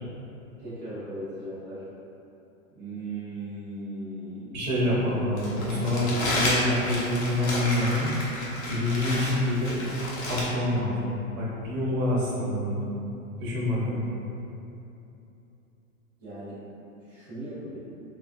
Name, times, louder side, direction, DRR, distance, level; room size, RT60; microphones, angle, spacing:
voice 1, 0.6-1.8 2.7-4.7 5.1-5.2 16.2-16.6 17.0-17.8, right 1 dB, 15° right, -15 dB, 0.4 m, -38 dB
voice 2, 4.5-8.1 8.7-9.8 10.3-12.9 13.4-14.0, left 1 dB, 70° right, -6 dB, 0.9 m, -26 dB
Crumpling crinkling, 5.4-10.4, left 1 dB, 50° left, 0.7 m, -31 dB
3.1 x 2.3 x 2.5 m, 2.8 s
hypercardioid pair, 165°, 43 cm